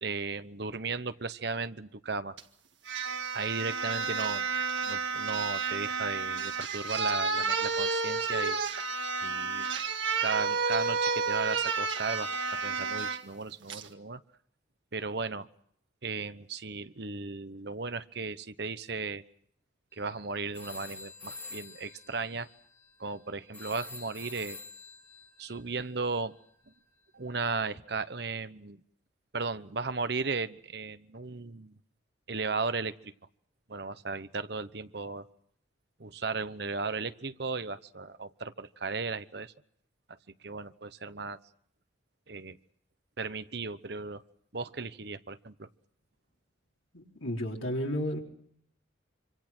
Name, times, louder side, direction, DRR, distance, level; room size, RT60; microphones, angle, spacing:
voice 1, 0.0-2.4 3.3-4.5 4.8-8.6 9.2-9.7 10.2-14.2 14.9-15.5 16.0-19.2 20.0-22.5 23.0-24.6 25.4-26.3 27.1-28.8 29.3-31.7 32.3-33.1 33.7-35.3 36.0-39.5 40.4-41.4 42.3-42.6 43.2-44.2 44.5-45.7, right 4 dB, 55° right, 12 dB, 1.0 m, -35 dB
sound 1, 2.4-2.5 2.9-13.2 13.7-13.9, right 4 dB, 70° right, 1.9 m, -31 dB
sound 2, 19.9-20.2 20.5-27.2, left 3 dB, 10° left, 4.1 m, -48 dB
voice 2, 46.9-48.2, equal, 90° left, 0 dB, 4.4 m, -32 dB
26.0 x 25.5 x 6.1 m, 0.67 s
head